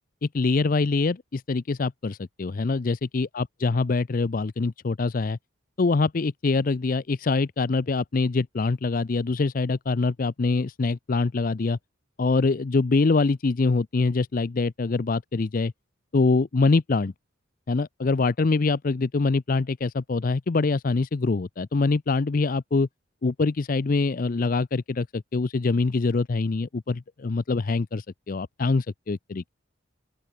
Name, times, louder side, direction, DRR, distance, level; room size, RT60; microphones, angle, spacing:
voice 1, 0.2-5.4 5.8-11.8 12.2-15.7 16.1-17.1 17.7-22.9 23.2-29.5, left 3 dB, 40° left, 0.5 m, -24 dB
open air
head